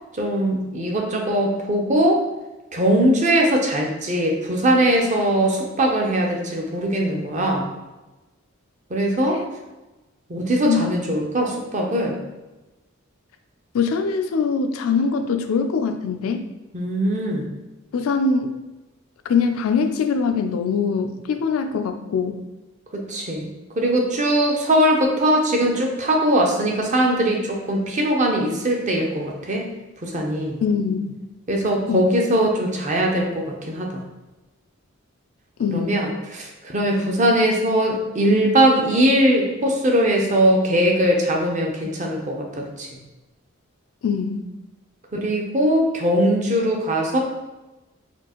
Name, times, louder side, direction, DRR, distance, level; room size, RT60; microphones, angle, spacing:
voice 1, 0.2-2.2 2.7-7.6 8.9-9.4 10.3-12.2 16.7-17.5 22.9-23.5 23.8-29.6 30.0-30.6 31.5-34.0 35.7-42.9 45.1-47.2, right 1 dB, 35° right, 0 dB, 0.6 m, -20 dB
voice 2, 13.7-16.5 17.9-18.5 19.3-22.4 30.6-31.1 31.9-32.0 35.6-35.9 44.0-44.5, left 5 dB, 85° left, 7 dB, 0.4 m, -22 dB
4.3 x 2.4 x 2.9 m, 1.1 s
head